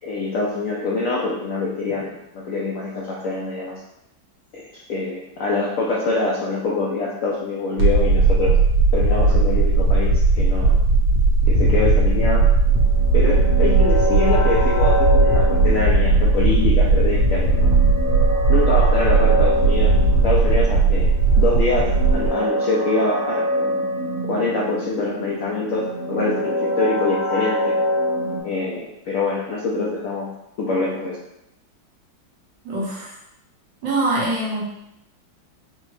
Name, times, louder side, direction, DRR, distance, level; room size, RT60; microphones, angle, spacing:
voice 1, 0.0-3.8 4.5-8.6 8.9-10.7 11.5-12.5 13.1-17.7 18.5-20.0 20.2-21.1 21.4-23.8 24.2-27.8 28.4-30.3 30.6-31.2, left 3 dB, 70° left, -4 dB, 0.8 m, -25 dB
sound 1, 7.8-22.3, right 3 dB, 90° right, 1.8 m, -17 dB
sound 2, 12.6-28.4, equal, 40° left, 0.5 m, -26 dB
voice 2, 32.6-33.1 33.8-34.6, right 2 dB, 75° right, -4 dB, 1.6 m, -23 dB
4.9 x 2.2 x 3.1 m, 0.85 s
omnidirectional pair, 2.0 m